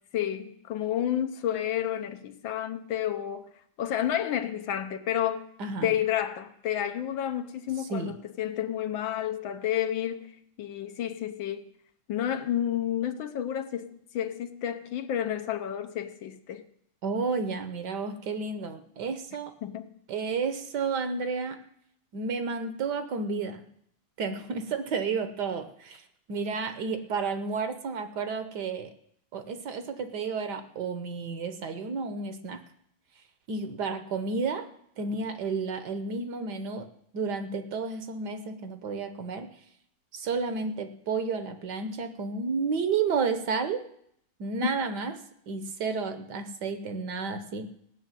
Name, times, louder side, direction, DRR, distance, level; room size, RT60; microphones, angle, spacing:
voice 1, 0.1-3.5 3.8-5.5 5.8-11.7 12.1-16.6 19.6-19.9, left 10 dB, 75° left, 1.6 m, -30 dB
voice 2, 5.6-5.9 7.9-8.1 17.0-19.5 20.1-21.6 22.1-23.6 24.2-26.0 26.3-28.9 29.3-32.6 33.5-34.6 35.0-36.9 37.1-39.5 40.1-43.8 44.4-45.1 45.5-47.7, right 4 dB, 60° right, 1.5 m, -31 dB
16.5 x 6.5 x 9.0 m
omnidirectional pair, 2.2 m